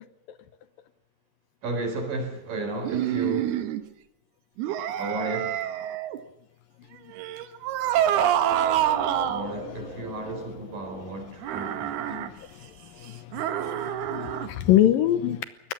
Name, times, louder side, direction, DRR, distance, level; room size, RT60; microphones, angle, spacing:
voice 1, 1.6-3.6 5.0-5.6 9.3-12.4, right 2 dB, 60° right, 6.2 m, -33 dB
sound 1, 2.8-3.8 4.6-6.2 7.2-9.5 11.4-12.3 13.3-14.5, right 11 dB, 90° right, 3.2 m, -27 dB
sound 2, 8.5-12.1, left 4 dB, 50° left, 4.0 m, -42 dB
voice 2, 12.6-15.4, left 12 dB, 75° left, 2.5 m, -25 dB
22.5 x 20.0 x 7.2 m
omnidirectional pair, 4.4 m